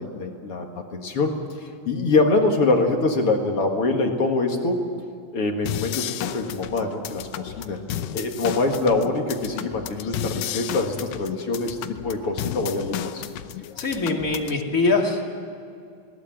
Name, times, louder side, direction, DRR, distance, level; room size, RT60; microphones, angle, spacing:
voice 1, 0.0-4.8 5.3-7.8 8.1-13.3, left 3 dB, 45° left, 3 dB, 2.4 m, -24 dB
sound 1, 5.7-14.6, left 12 dB, 80° left, 2.5 m, -33 dB
voice 2, 13.8-15.2, left 3 dB, 25° left, 1 dB, 2.5 m, -23 dB
20.0 x 18.0 x 9.2 m, 2.4 s
omnidirectional pair, 4.0 m